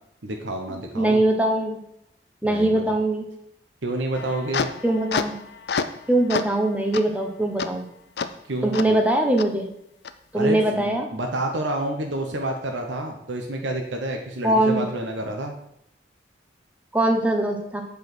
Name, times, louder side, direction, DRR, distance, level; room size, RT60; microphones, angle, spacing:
voice 1, 0.2-1.2 2.4-2.8 3.8-4.7 8.5-9.0 10.3-15.5, right 1 dB, 90° right, 2 dB, 1.1 m, -29 dB
voice 2, 0.9-1.8 2.4-3.3 4.8-5.3 6.1-7.9 8.6-9.7 10.3-11.1 14.4-14.8 16.9-17.8, right 1 dB, 10° right, 3 dB, 1.0 m, -21 dB
sound 1, 4.1-6.0 6.3-6.6 6.9-7.0 7.6-7.7 8.2-8.3 8.7-8.9 9.4-9.5 10.0-10.1, left 5 dB, 65° left, 0.5 m, -28 dB
8.1 x 4.9 x 6.1 m, 0.76 s
head